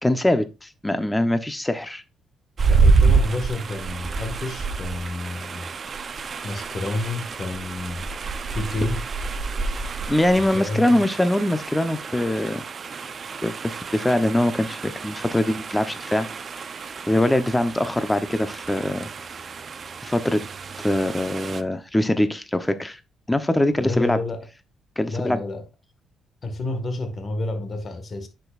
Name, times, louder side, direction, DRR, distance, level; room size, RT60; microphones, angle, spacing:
voice 1, 0.0-2.0 10.1-12.6 13.4-16.3 17.1-19.1 20.0-20.4 20.8-23.0 23.3-24.2 25.0-25.4, left 1 dB, 10° left, 0.9 m, -23 dB
sound 1, 2.6-21.6, right 4 dB, 45° right, 0.8 m, -27 dB
voice 2, 2.7-5.7 6.4-8.1 8.5-9.0 10.5-11.0 23.8-24.5 25.1-25.6 26.4-28.3, left 2 dB, 45° left, 1.8 m, -29 dB
9.6 x 6.2 x 2.5 m
cardioid pair, 90°, 0 cm